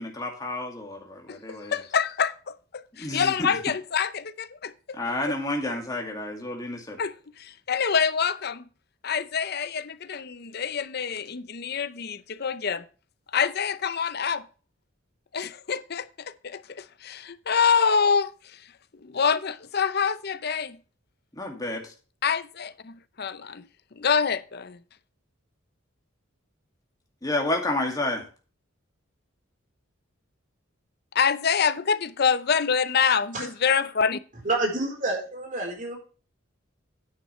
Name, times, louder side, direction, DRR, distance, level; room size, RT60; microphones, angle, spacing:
voice 1, 0.0-1.8 3.0-3.3 5.0-7.0 21.3-21.9 27.2-28.3, left 2 dB, 20° left, 2.2 m, -30 dB
voice 2, 1.9-2.3 3.1-4.1 7.0-7.1 7.7-8.5 9.1-9.7 10.6-11.2 11.7-11.9 12.4-12.8 13.3-14.4 15.4-15.8 17.5-18.2 19.2-20.7 22.2-22.4 23.2-23.3 24.0-24.4 31.2-33.3 33.6-34.2, left 6 dB, 50° left, 0.6 m, -23 dB
voice 3, 34.4-36.0, right 2 dB, 40° right, 4.1 m, -28 dB
9.7 x 9.3 x 3.2 m
head